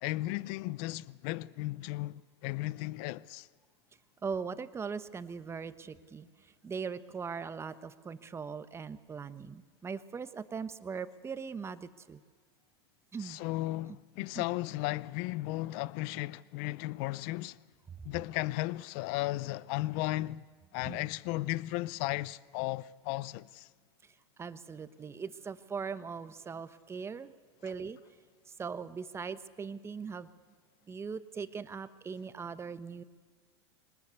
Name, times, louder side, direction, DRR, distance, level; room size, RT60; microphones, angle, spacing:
voice 1, 0.0-3.5 13.2-17.6 18.0-20.4 20.7-23.7, left 18 dB, 55° left, 0.6 m, -35 dB
voice 2, 4.2-12.2 13.1-13.4 14.4-14.5 20.8-21.0 24.4-27.3 27.6-28.0 28.5-30.3 30.9-33.0, right 5 dB, 20° right, 1.0 m, -40 dB
22.5 x 19.5 x 8.3 m
hypercardioid pair, 115°, 14 cm